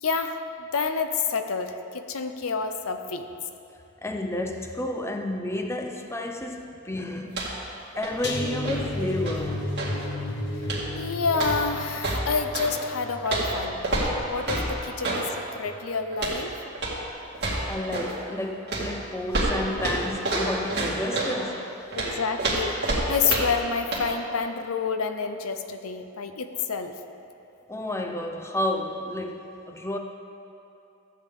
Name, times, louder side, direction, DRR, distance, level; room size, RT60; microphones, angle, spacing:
voice 1, 0.0-3.3 10.9-14.0 14.2-15.3 15.5-16.5 22.0-22.8 23.1-26.9, left 5 dB, 75° left, 7 dB, 0.6 m, -28 dB
voice 2, 4.0-7.4 8.0-9.6 17.7-21.8 27.7-30.0, left 1 dB, 10° left, 4 dB, 0.5 m, -31 dB
sound 1, 7.3-7.7 8.0-10.0 10.6-11.0 11.3-12.7 13.3-15.3 16.1-16.4 16.8-17.0 17.3-18.2 18.7-21.4 21.9-23.7 23.9-24.1, right 2 dB, 50° right, 2.3 m, -28 dB
sound 2, 8.2-15.3 15.7-16.0 16.3-16.4, left 1 dB, 50° left, 1.2 m, -34 dB
14.5 x 8.7 x 3.6 m, 2.7 s
head